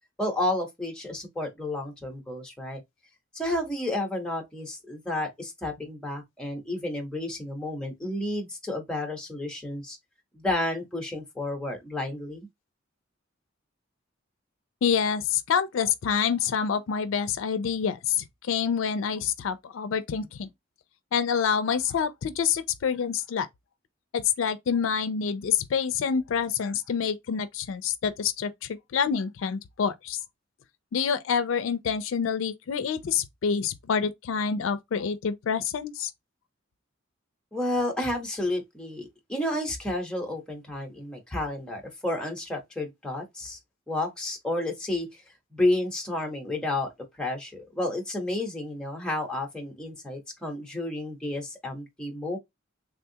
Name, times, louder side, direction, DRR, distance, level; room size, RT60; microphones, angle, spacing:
voice 1, 0.2-2.8 3.3-10.0 10.3-12.5 37.5-43.6 43.9-45.1 45.5-46.9 47.2-52.4, left 1 dB, 5° left, 0.8 m, -31 dB
voice 2, 14.8-20.5 21.1-23.5 24.1-30.2 30.9-36.1, left 7 dB, 75° left, 0.4 m, -27 dB
3.5 x 2.3 x 2.7 m
head